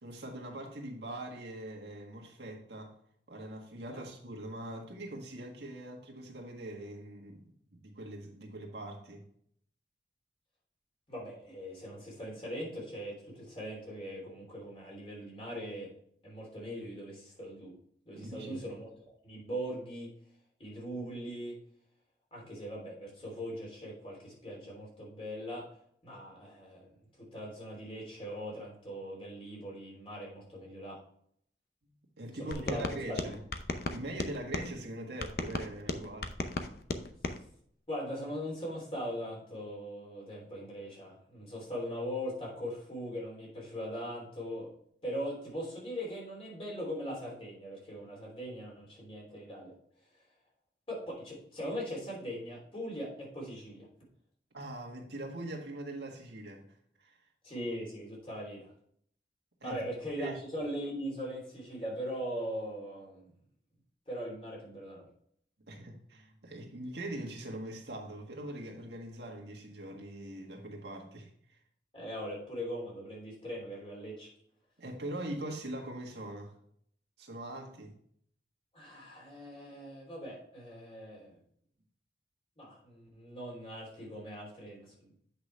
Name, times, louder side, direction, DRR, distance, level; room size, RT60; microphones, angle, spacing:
voice 1, 0.0-3.0 3.3-7.4 7.7-9.3 18.1-18.6 32.2-33.4 33.9-36.3 54.5-56.6 57.0-57.2 59.6-59.8 60.2-60.4 65.7-71.6 74.8-76.5 77.2-78.0, right 1 dB, 80° right, 1 dB, 1.7 m, -42 dB
voice 2, 11.1-15.9 16.2-17.7 18.0-18.9 19.2-20.1 20.6-21.6 22.3-25.7 26.0-26.9 27.3-31.0 32.4-33.2 37.9-44.7 45.0-49.7 50.9-53.9 57.4-58.7 59.6-63.3 64.1-65.1 71.9-74.3 78.7-81.4 82.6-85.1, equal, 30° left, -3 dB, 3.2 m, -40 dB
sound 1, 32.5-34.7 35.2-37.4, left 2 dB, 60° left, 0.7 m, -36 dB
8.0 x 5.9 x 3.3 m, 0.65 s
head